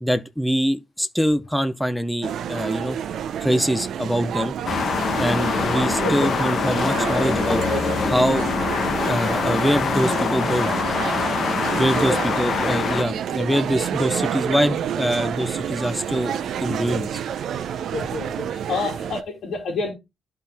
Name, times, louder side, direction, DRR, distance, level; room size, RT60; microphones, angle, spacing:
voice 1, 0.0-3.0 3.4-4.5 5.2-7.6 8.1-8.5 8.9-10.7 11.8-17.2, equal, ahead, 0.7 m, -24 dB
sound 1, 2.2-19.2, right 9 dB, 65° right, 0.6 m, -29 dB
sound 2, 4.7-13.0, left 5 dB, 45° left, 1.0 m, -24 dB
sound 3, 6.1-11.1, left 2 dB, 25° left, 4.2 m, -42 dB
voice 2, 17.9-19.9, left 3 dB, 60° left, 2.5 m, -28 dB
11.5 x 4.4 x 3.5 m
cardioid pair, 135°, 0 cm